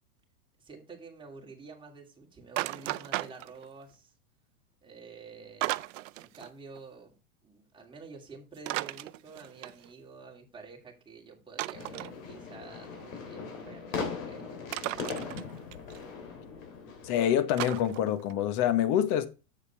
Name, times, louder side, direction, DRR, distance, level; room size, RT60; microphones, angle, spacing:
voice 1, 0.6-4.1 4.8-5.7 6.2-7.1 7.4-15.3, right 4 dB, 10° right, 2.7 m, -49 dB
sound 1, 2.6-3.8 5.6-6.5 6.8-6.9 8.6-9.9 11.6-12.1 14.7-16.0 17.6-18.3, right 18 dB, 65° right, 0.6 m, -35 dB
sound 2, 11.7-17.1, left 5 dB, 65° left, 3.1 m, -39 dB
voice 2, 17.0-19.3, left 10 dB, 45° left, 1.3 m, -26 dB
7.5 x 6.9 x 4.5 m
hypercardioid pair, 120°, 42 cm